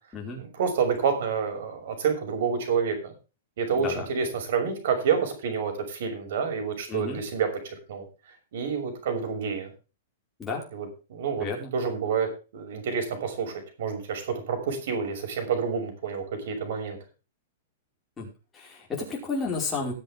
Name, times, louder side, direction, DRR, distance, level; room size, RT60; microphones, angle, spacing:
voice 1, 0.4-3.1 3.6-9.7 10.7-11.5 11.7-17.0, right 6 dB, 60° right, 6 dB, 6.2 m, -28 dB
voice 2, 6.9-7.2 10.4-10.6 11.4-11.7 18.2-18.3 18.5-19.9, left 4 dB, 10° left, -3 dB, 5.1 m, -31 dB
19.5 x 8.1 x 3.6 m, 0.33 s
supercardioid pair, 165°, 0 cm